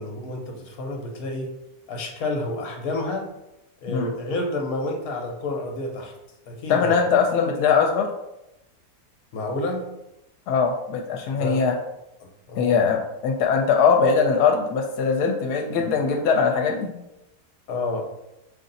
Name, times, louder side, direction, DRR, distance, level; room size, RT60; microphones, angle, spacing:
voice 1, 0.0-1.5 1.9-3.3 3.8-6.1 6.5-7.0 9.3-9.8 11.3-11.6 12.2-12.9 17.7-18.0, left 2 dB, 70° left, 2 dB, 1.3 m, -29 dB
voice 2, 6.7-8.1 10.5-11.8 12.6-16.9, left 5 dB, 90° left, 2 dB, 1.2 m, -21 dB
5.2 x 2.6 x 3.9 m, 0.90 s
omnidirectional pair, 1.7 m